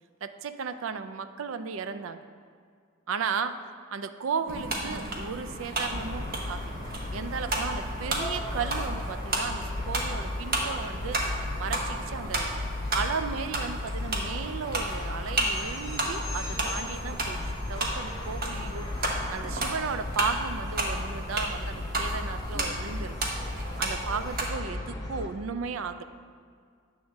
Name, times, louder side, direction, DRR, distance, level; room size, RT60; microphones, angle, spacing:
voice 1, 0.2-2.2 3.1-3.6 3.9-6.7 7.1-12.5 12.9-17.4 17.7-23.2 23.8-26.0, right 5 dB, 75° right, 11 dB, 0.4 m, -35 dB
sound 1, 4.5-24.4, right 2 dB, 50° right, 1.0 m, -33 dB
sound 2, 5.9-25.3, left 2 dB, 20° left, 0.8 m, -35 dB
8.8 x 3.5 x 6.4 m, 2.1 s
head